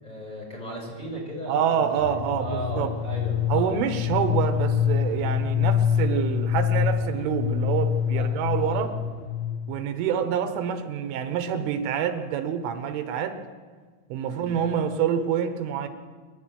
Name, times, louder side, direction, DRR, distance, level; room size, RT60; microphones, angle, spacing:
voice 1, 0.0-3.7 8.1-8.3 8.6-8.8 14.3-14.5, equal, 10° left, -3 dB, 5.5 m, -36 dB
voice 2, 1.5-2.9 3.5-8.9 9.7-13.4 14.1-15.9, right 8 dB, 80° right, 8 dB, 3.7 m, -27 dB
sound 1, 2.0-9.8, left 8 dB, 90° left, 2.1 m, -25 dB
27.0 x 11.0 x 9.0 m, 1.5 s
omnidirectional pair, 5.6 m